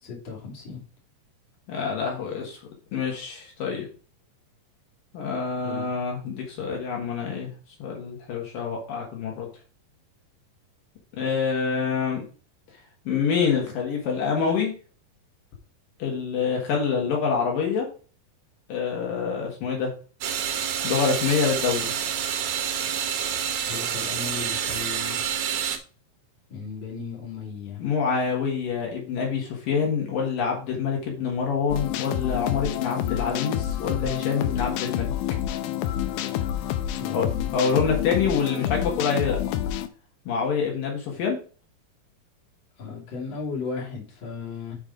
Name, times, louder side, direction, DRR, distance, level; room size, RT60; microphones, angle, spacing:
voice 1, 0.0-0.8 5.6-5.9 23.6-25.2 26.5-27.8 36.9-37.5 42.8-44.8, left 5 dB, 35° left, -3 dB, 3.0 m, -36 dB
voice 2, 1.7-2.6 2.9-3.9 5.1-7.5 7.8-9.5 11.2-12.2 13.1-14.7 16.0-17.9 18.7-19.9 20.8-21.9 27.8-35.1 37.1-37.3 37.5-39.4 40.3-41.4, left 6 dB, 70° left, -1 dB, 3.2 m, -26 dB
sound 1, 20.2-25.8, right 8 dB, 70° right, 1.8 m, -28 dB
sound 2, 31.7-39.9, left 11 dB, 90° left, 2.4 m, -28 dB
7.3 x 5.3 x 4.9 m, 0.38 s
omnidirectional pair, 4.1 m